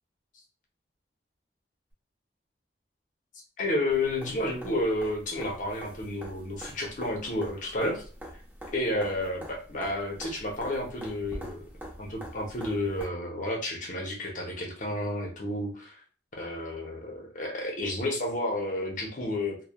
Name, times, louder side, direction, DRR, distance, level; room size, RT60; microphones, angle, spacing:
voice 1, 3.6-8.0 8.7-9.4 9.7-11.6 12.0-15.9 16.4-19.6, left 1 dB, 45° left, 0 dB, 0.7 m, -31 dB
sound 1, 3.9-13.0 15.0-15.1, equal, 10° right, 0.8 m, -45 dB
3.1 x 2.1 x 2.2 m, 0.42 s
head